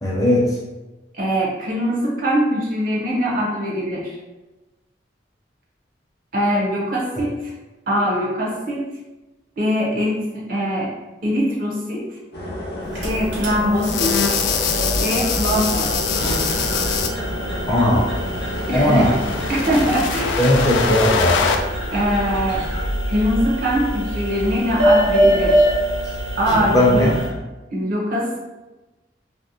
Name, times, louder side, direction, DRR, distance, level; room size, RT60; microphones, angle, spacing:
voice 1, 0.0-0.4 17.7-18.0 18.7-19.1 20.4-21.5 26.7-27.2, left 1 dB, 20° left, -5 dB, 0.6 m, -17 dB
voice 2, 1.1-4.2 6.3-7.5 7.9-8.8 9.6-10.9 11.2-12.0 13.0-14.1 15.0-15.9 18.7-19.2 19.5-20.5 21.9-22.7 23.1-25.7 26.4-27.1 27.7-28.4, equal, 50° right, -3 dB, 0.6 m, -22 dB
sound 1, 12.3-20.0, left 1 dB, 60° left, 0.6 m, -31 dB
sound 2, 12.8-27.3, equal, 80° right, 1.0 m, -24 dB
sound 3, 13.8-17.1 18.2-21.6, left 6 dB, 90° left, 0.3 m, -23 dB
2.5 x 2.0 x 2.7 m, 1.1 s
head